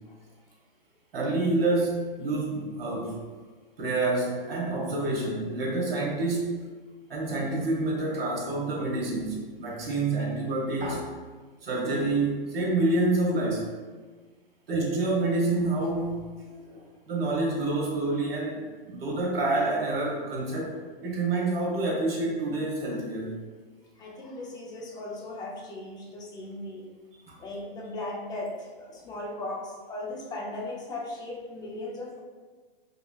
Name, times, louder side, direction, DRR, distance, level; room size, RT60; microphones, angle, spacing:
voice 1, 1.1-3.2 3.8-6.7 7.1-11.1 11.6-13.7 14.7-20.7 21.0-23.4 27.3-27.4, right 2 dB, 75° right, -2 dB, 1.3 m, -28 dB
voice 2, 24.0-26.9 27.4-32.2, left 2 dB, 15° left, -2 dB, 0.5 m, -37 dB
3.5 x 3.3 x 2.3 m, 1.4 s
hypercardioid pair, 125°, 30 cm